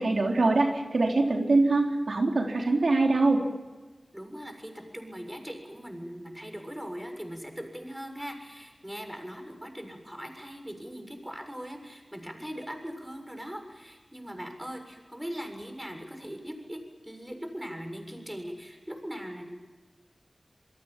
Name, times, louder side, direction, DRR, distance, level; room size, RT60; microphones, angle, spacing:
voice 1, 0.0-3.4, right 2 dB, 85° right, 1 dB, 3.7 m, -23 dB
voice 2, 4.1-19.5, equal, 10° right, 5 dB, 7.1 m, -40 dB
28.0 x 23.0 x 7.5 m, 1.3 s
wide cardioid pair, 50°, 0 cm